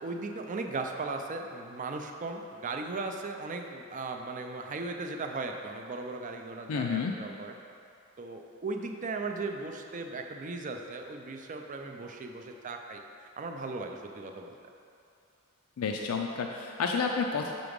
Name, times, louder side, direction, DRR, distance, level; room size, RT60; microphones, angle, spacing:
voice 1, 0.0-7.5 8.2-14.6, right 3 dB, 35° right, 4 dB, 0.4 m, -37 dB
voice 2, 6.7-7.1 15.8-17.5, left 5 dB, 85° left, 2 dB, 0.4 m, -30 dB
6.0 x 3.9 x 5.1 m, 2.5 s
head